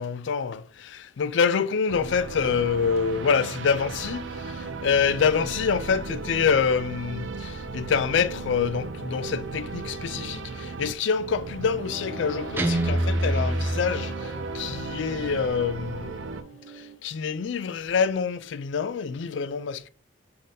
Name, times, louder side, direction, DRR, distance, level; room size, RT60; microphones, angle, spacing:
voice 1, 0.0-16.2 17.0-19.9, left 6 dB, 70° left, 0.4 m, -26 dB
sound 1, 1.9-16.4, right 3 dB, 75° right, 0.5 m, -36 dB
sound 2, 11.9-17.0, equal, 50° right, 1.1 m, -44 dB
Guitar, 12.6-14.6, right 1 dB, 10° right, 0.4 m, -26 dB
5.6 x 3.4 x 2.7 m
head